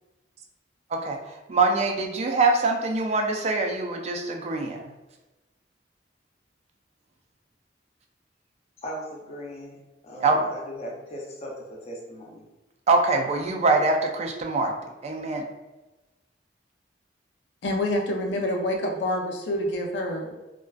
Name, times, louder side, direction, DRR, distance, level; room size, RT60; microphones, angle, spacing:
voice 1, 1.5-4.9 10.2-10.4 12.9-14.7 15.0-15.4, right 3 dB, 40° right, 0.3 m, -23 dB
voice 2, 8.8-9.8 10.0-12.4, equal, 35° left, 0.5 m, -38 dB
voice 3, 17.6-20.4, left 1 dB, 85° left, 0.5 m, -27 dB
2.4 x 2.2 x 2.3 m
head